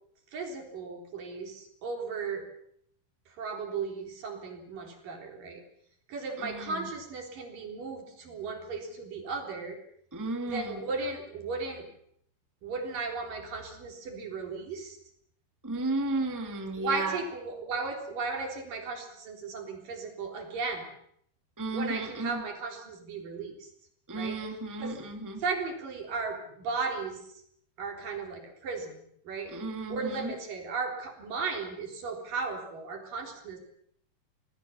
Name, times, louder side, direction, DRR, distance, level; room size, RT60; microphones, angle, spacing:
voice 1, 0.3-2.5 3.3-5.6 6.1-9.8 10.5-11.9 12.6-15.0 16.8-20.8 21.7-23.7 24.1-24.4 24.8-24.9 25.4-27.4 27.8-29.5 29.9-33.6, right 4 dB, 65° right, 3 dB, 5.3 m, -36 dB
voice 2, 6.4-6.8 10.1-10.8 15.6-17.2 21.6-22.4 24.1-25.4 29.5-30.3, right 2 dB, 5° right, 5 dB, 1.8 m, -33 dB
26.0 x 19.5 x 7.1 m, 0.69 s
omnidirectional pair, 4.3 m